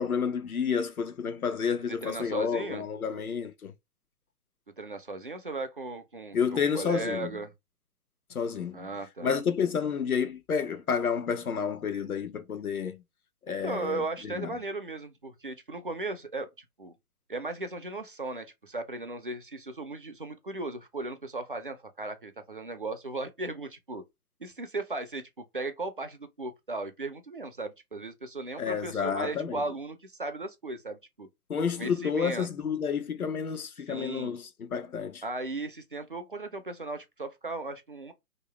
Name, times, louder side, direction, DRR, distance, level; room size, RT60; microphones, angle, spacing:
voice 1, 0.0-3.7 6.3-7.3 8.3-8.9 9.2-13.0 13.5-14.0 14.4-14.5 28.6-29.6 31.5-35.2, left 6 dB, 65° left, 0.9 m, -30 dB
voice 2, 1.9-2.8 4.8-7.5 8.7-9.4 13.5-16.9 17.3-24.0 24.4-31.3 31.8-32.5 33.9-34.4 35.2-38.1, right 2 dB, 35° right, 0.4 m, -36 dB
3.2 x 2.8 x 3.1 m
figure-of-eight pair, 135°, 46 cm